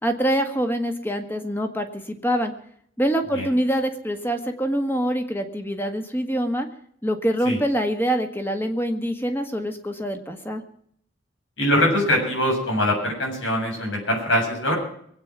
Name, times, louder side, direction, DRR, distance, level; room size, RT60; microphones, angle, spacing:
voice 1, 0.0-2.5 3.0-6.7 7.0-10.6, equal, 10° left, 6 dB, 1.7 m, -25 dB
voice 2, 11.6-14.7, left 1 dB, 80° left, 0 dB, 7.7 m, -22 dB
23.0 x 8.9 x 6.1 m, 0.66 s
head